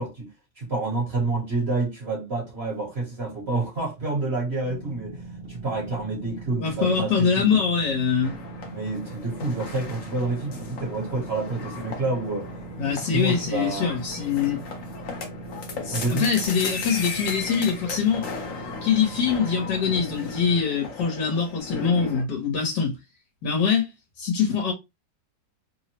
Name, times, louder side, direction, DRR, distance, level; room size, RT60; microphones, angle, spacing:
voice 1, 0.0-5.2 5.5-7.6 8.7-12.5 12.8-13.9 15.9-16.3, right 3 dB, 45° right, 1.1 m, -28 dB
sound 1, 4.6-20.6, right 3 dB, 65° right, 0.6 m, -40 dB
voice 2, 6.6-8.4 12.8-14.6 15.8-18.3 18.8-22.9 23.4-23.9 24.2-24.7, left 6 dB, 70° left, 1.4 m, -23 dB
sound 2, 8.2-22.2, left 5 dB, 55° left, 1.0 m, -37 dB
3.4 x 2.0 x 2.8 m
omnidirectional pair, 1.9 m